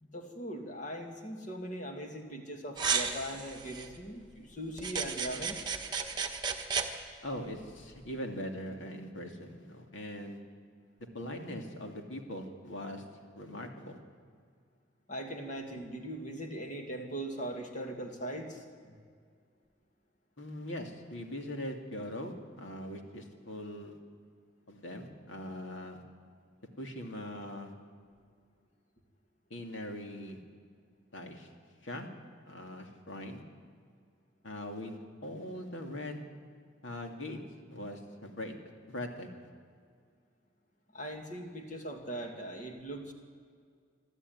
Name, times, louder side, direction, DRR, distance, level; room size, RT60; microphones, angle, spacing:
voice 1, 0.0-5.6 15.1-18.9 40.9-43.1, right 1 dB, 40° left, 3 dB, 2.4 m, -40 dB
sound 1, 2.8-3.9 4.8-6.9, right 6 dB, 20° right, 1.4 m, -33 dB
voice 2, 7.2-10.4 11.1-13.0 13.4-14.0 20.4-24.0 24.7-26.0 26.8-27.7 29.5-30.4 31.1-31.5 31.8-32.1 32.4-33.4 34.4-36.2 36.8-37.4 37.7-38.5 38.9-39.3, left 1 dB, 70° left, 3 dB, 2.6 m, -41 dB
26.0 x 12.5 x 9.5 m, 2.1 s
head